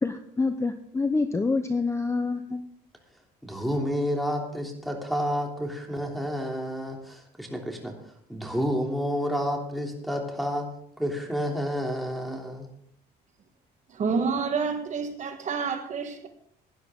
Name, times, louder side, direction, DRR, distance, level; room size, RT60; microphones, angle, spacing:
voice 1, 0.0-2.6, left 3 dB, 15° left, 9 dB, 0.8 m, -27 dB
voice 2, 3.4-10.7 11.0-12.7, equal, ahead, 1 dB, 3.1 m, -30 dB
voice 3, 13.9-16.3, right 5 dB, 45° right, 6 dB, 1.6 m, -28 dB
17.0 x 11.0 x 3.8 m, 0.66 s
cardioid pair, 110°, 17 cm